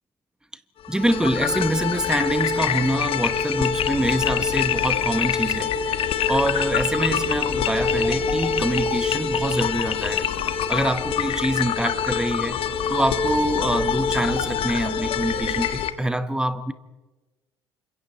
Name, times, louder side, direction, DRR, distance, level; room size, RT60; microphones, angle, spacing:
sound 1, 0.8-15.9, left 7 dB, 40° left, 1.7 m, -25 dB
voice 1, 0.9-5.8 6.3-10.3 10.7-12.6 12.9-16.7, right 1 dB, 5° right, 1.4 m, -25 dB
29.0 x 26.0 x 4.4 m
figure-of-eight pair, 65°, 14 cm